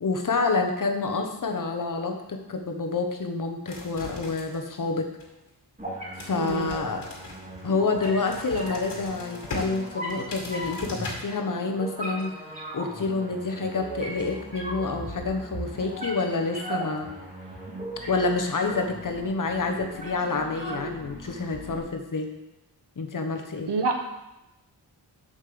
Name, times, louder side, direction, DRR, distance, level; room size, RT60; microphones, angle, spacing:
voice 1, 0.0-5.1 6.3-7.0 7.6-12.3 12.7-17.1 18.1-22.3 23.0-23.7, left 3 dB, 50° left, 4 dB, 1.1 m, -28 dB
sound 1, 3.7-4.8 5.2-5.5 6.1-11.1, left 2 dB, 85° left, 2.0 m, -40 dB
sound 2, 5.8-21.8, right 1 dB, 20° right, 2.7 m, -38 dB
voice 2, 6.3-6.7 23.7-24.0, right 4 dB, 80° right, 4 dB, 1.2 m, -26 dB
7.4 x 5.3 x 6.9 m, 0.94 s
wide cardioid pair, 125°, 41 cm